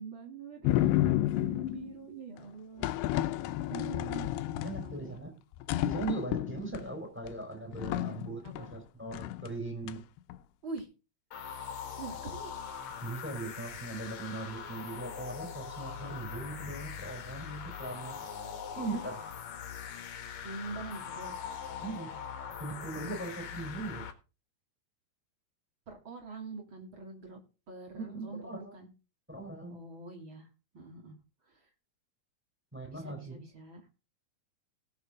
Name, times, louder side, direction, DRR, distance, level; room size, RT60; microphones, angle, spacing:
voice 1, 0.0-2.9 3.7-4.3 4.8-5.1 8.4-8.7 10.6-10.9 12.0-12.5 20.4-21.3 25.9-27.4 27.7-28.9 29.7-30.5 30.7-31.1 31.5-31.6 32.9-33.8, right 4 dB, 35° right, 2 dB, 3.1 m, -44 dB
sound 1, 0.6-1.9 2.8-5.2 5.5-6.8 7.3-7.4 7.7-8.8 9.1-9.5 9.9-10.4, left 15 dB, 85° left, 2.7 m, -31 dB
voice 2, 4.6-5.3 5.8-10.0 13.0-18.2 18.7-19.2 21.8-22.2 22.6-24.1 27.9-28.8 29.3-29.8 32.7-33.5, right 3 dB, 5° right, 3 dB, 4.0 m, -39 dB
sound 2, 11.3-24.1, left 7 dB, 55° left, 2.4 m, -42 dB
18.5 x 6.7 x 3.7 m, 0.31 s
omnidirectional pair, 4.5 m